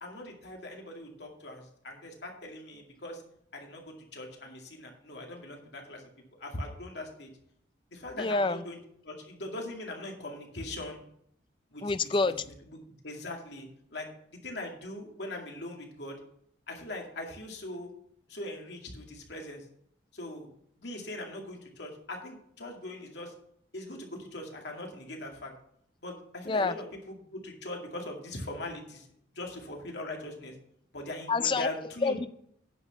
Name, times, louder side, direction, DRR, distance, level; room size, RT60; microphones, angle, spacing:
voice 1, 0.0-3.2 3.5-6.0 6.4-7.3 7.9-8.8 9.0-11.0 11.7-12.1 12.7-12.8 13.0-16.2 16.7-17.9 18.3-19.6 20.1-20.5 20.8-23.3 23.7-25.5 26.0-30.5 30.9-32.2, left 1 dB, 70° left, 1 dB, 2.3 m, -41 dB
voice 2, 8.2-8.6 11.8-12.4 26.5-26.7 31.3-31.7 32.0-32.3, left 3 dB, 25° left, 13 dB, 0.4 m, -27 dB
9.8 x 6.3 x 5.9 m, 0.69 s
head